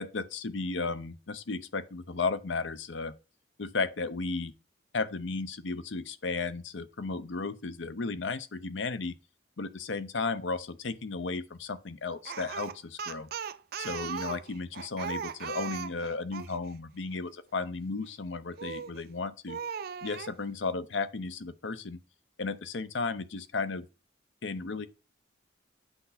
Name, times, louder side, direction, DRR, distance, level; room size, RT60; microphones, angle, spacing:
voice 1, 0.0-3.1 3.6-4.5 4.9-9.1 9.6-13.3 13.8-19.6 20.0-22.0 22.4-23.9 24.4-24.9, left 4 dB, 75° left, 0.7 m, -34 dB
Speech, 12.2-16.6 18.6-19.0 19.5-20.3, right 7 dB, 50° right, 0.4 m, -38 dB
8.1 x 5.6 x 4.1 m
head